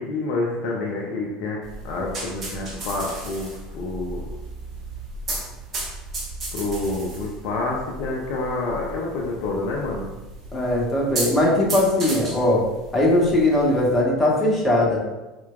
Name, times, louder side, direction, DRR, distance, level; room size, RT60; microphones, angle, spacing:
voice 1, 0.0-1.6 1.8-4.3 6.5-10.1 12.1-12.3, left 2 dB, 55° left, -2 dB, 0.4 m, -28 dB
sound 1, 1.6-14.0, right 2 dB, 35° right, 0.8 m, -35 dB
voice 2, 10.5-12.6 12.9-15.0, left 1 dB, 15° left, -4 dB, 1.0 m, -20 dB
4.3 x 2.1 x 2.3 m, 1.1 s
figure-of-eight pair, 70°, 0 cm